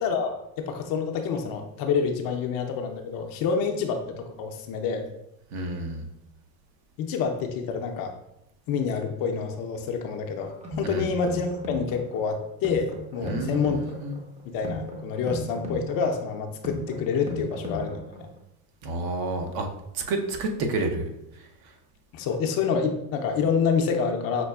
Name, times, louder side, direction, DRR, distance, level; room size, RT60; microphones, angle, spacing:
voice 1, 0.0-5.0 7.0-8.1 8.7-13.8 14.5-18.3 22.1-24.4, left 5 dB, 45° left, 4 dB, 0.6 m, -27 dB
voice 2, 5.5-6.1 10.8-11.1 13.2-13.7 14.0-14.2 18.8-19.7 19.9-21.1, right 2 dB, 50° right, 4 dB, 0.7 m, -29 dB
sound 1, 10.4-18.4, left 1 dB, 15° right, 0.6 m, -36 dB
5.8 x 2.3 x 2.3 m, 0.83 s
hypercardioid pair, 90°, 48 cm